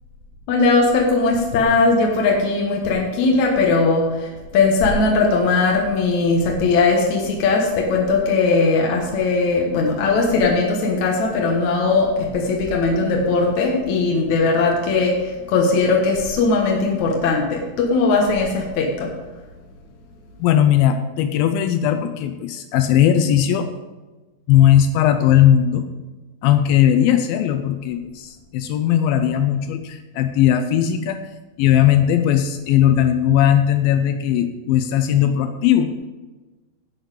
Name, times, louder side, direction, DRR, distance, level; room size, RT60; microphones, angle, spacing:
voice 1, 0.5-19.1, left 3 dB, 60° left, 0 dB, 2.3 m, -19 dB
voice 2, 20.4-23.7 24.5-25.8 26.4-31.2 31.6-35.9, left 10 dB, 80° left, 7 dB, 2.4 m, -17 dB
11.5 x 8.1 x 4.8 m, 1.2 s
omnidirectional pair, 4.3 m